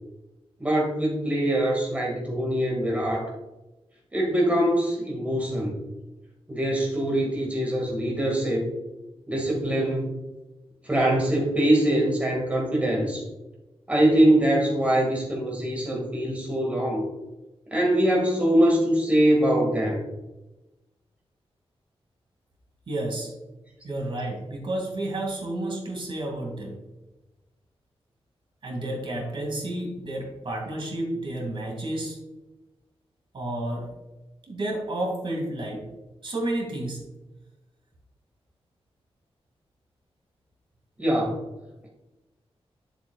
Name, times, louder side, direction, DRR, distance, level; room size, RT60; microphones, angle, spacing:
voice 1, 0.6-3.3 4.1-5.8 6.5-8.7 9.3-10.1 10.8-13.2 13.9-17.0 17.7-20.0 41.0-41.4, right 1 dB, 15° right, -3 dB, 1.8 m, -23 dB
voice 2, 22.9-23.3 23.8-26.7 28.6-32.2 33.3-33.9 34.5-35.8 36.2-37.0, right 1 dB, 55° right, 0 dB, 2.1 m, -31 dB
10.5 x 7.4 x 2.3 m, 1.0 s
wide cardioid pair, 155°, 11 cm